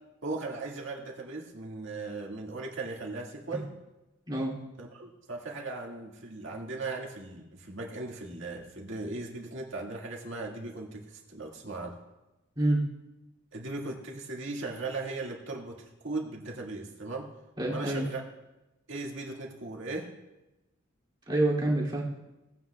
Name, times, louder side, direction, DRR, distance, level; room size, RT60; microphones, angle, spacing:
voice 1, 0.2-3.7 4.8-11.9 13.5-17.3 17.7-18.2 18.9-20.1, right 3 dB, 65° right, -1 dB, 1.9 m, -38 dB
voice 2, 17.6-18.1 21.3-22.0, right 1 dB, 20° right, -4 dB, 2.6 m, -27 dB
18.5 x 9.1 x 2.3 m, 1.0 s
head